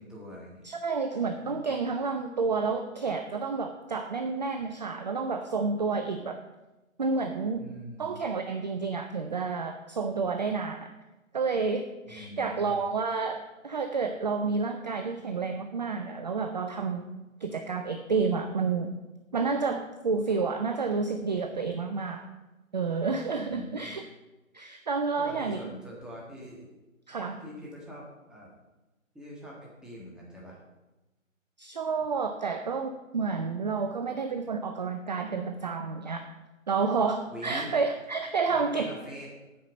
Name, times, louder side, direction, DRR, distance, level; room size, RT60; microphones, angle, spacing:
voice 1, 0.0-0.6 1.4-1.5 7.6-8.2 12.1-12.9 23.5-23.9 25.2-26.7 27.4-28.5 29.1-30.6 37.3-37.7 38.5-39.3, equal, ahead, -5 dB, 1.5 m, -43 dB
voice 2, 0.6-6.4 7.0-7.7 8.0-10.9 11.3-17.0 17.4-18.9 19.3-22.3 22.7-24.0 24.5-25.6 27.1-27.4 31.6-36.3 36.7-38.9, right 4 dB, 35° right, 6 dB, 0.5 m, -30 dB
8.5 x 5.6 x 7.2 m, 1.1 s
figure-of-eight pair, 140°, 40 cm